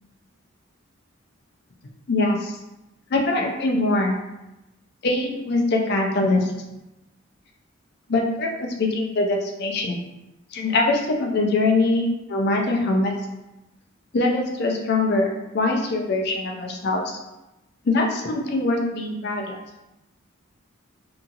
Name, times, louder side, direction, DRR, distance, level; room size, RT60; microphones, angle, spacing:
voice 1, 2.1-2.6 3.1-4.2 5.0-6.5 8.1-10.0 10.5-13.1 14.1-17.2 17.8-19.6, left 2 dB, 50° left, 1 dB, 0.4 m, -23 dB
2.7 x 2.7 x 2.4 m, 0.95 s
head